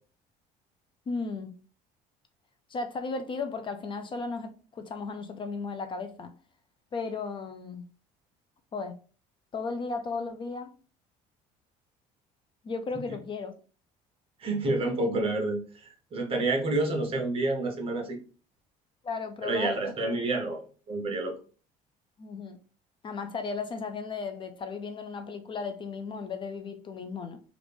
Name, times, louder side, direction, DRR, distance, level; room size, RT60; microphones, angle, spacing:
voice 1, 1.1-1.5 2.7-6.3 6.9-7.8 8.7-8.9 9.5-10.7 12.6-13.5 19.0-19.7 20.0-20.1 22.2-22.6 23.0-27.4, left 4 dB, 35° left, 7 dB, 0.4 m, -35 dB
voice 2, 14.4-18.2 19.4-20.6 20.9-21.3, right 2 dB, 40° right, 2 dB, 1.0 m, -29 dB
3.0 x 2.5 x 3.4 m, 0.39 s
cardioid pair, 115°, 15 cm